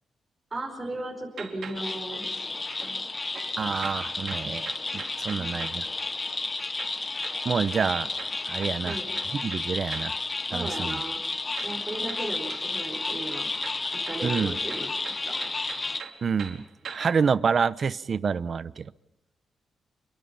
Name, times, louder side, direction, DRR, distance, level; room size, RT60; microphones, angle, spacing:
voice 1, 0.5-2.4 2.8-3.0 5.2-5.4 8.8-9.1 10.5-11.2 11.6-13.5 13.9-14.9 15.3-15.4, right 2 dB, 20° right, -1 dB, 4.9 m, -36 dB
sound 1, 1.3-3.0 3.3-5.9 6.8-10.2 11.6-12.8 13.1-17.2, right 6 dB, 65° right, 4.1 m, -44 dB
sound 2, 1.7-16.0, left 3 dB, 25° left, 0.8 m, -32 dB
voice 2, 3.6-5.9 7.4-8.1 8.5-9.0 9.4-10.2 10.5-11.0 14.2-14.6 16.2-18.8, right 6 dB, 45° right, 16 dB, 0.8 m, -28 dB
28.5 x 23.0 x 5.6 m, 0.87 s
wide cardioid pair, 135°, 0 cm